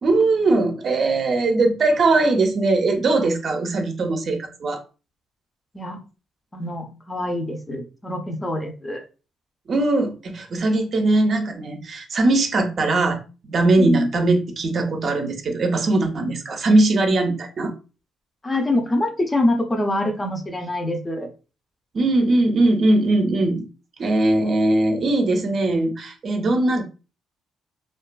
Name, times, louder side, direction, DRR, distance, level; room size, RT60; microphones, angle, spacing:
voice 1, 0.0-4.8 9.7-13.2 13.5-17.7 21.9-23.7 24.0-26.8, right 2 dB, 50° right, 4 dB, 0.5 m, -20 dB
voice 2, 6.5-9.0 13.8-14.1 18.4-21.3, left 1 dB, 20° left, 4 dB, 0.5 m, -24 dB
2.4 x 2.3 x 2.2 m, 0.33 s
cardioid pair, 90°, 0 cm